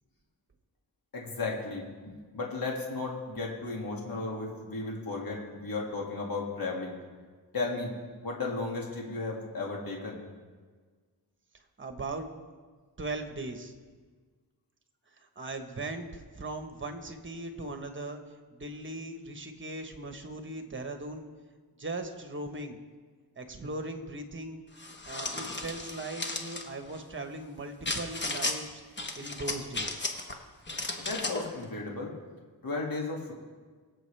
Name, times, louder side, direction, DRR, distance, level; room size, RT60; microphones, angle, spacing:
voice 1, 1.1-7.0 7.5-7.9 8.2-10.2 31.0-32.1 32.6-33.3, left 3 dB, 65° left, -2 dB, 2.3 m, -34 dB
voice 2, 11.8-12.3 13.0-13.7 15.2-18.2 18.5-21.3 21.8-22.8 23.4-24.6 25.0-28.8 29.2-30.1, right 2 dB, 30° right, 6 dB, 1.2 m, -39 dB
sound 1, 24.8-26.7 27.8-28.6 29.0-30.3 30.7-31.5, left 2 dB, 30° left, 1.1 m, -34 dB
22.5 x 7.7 x 3.4 m, 1.5 s
wide cardioid pair, 115°, 38 cm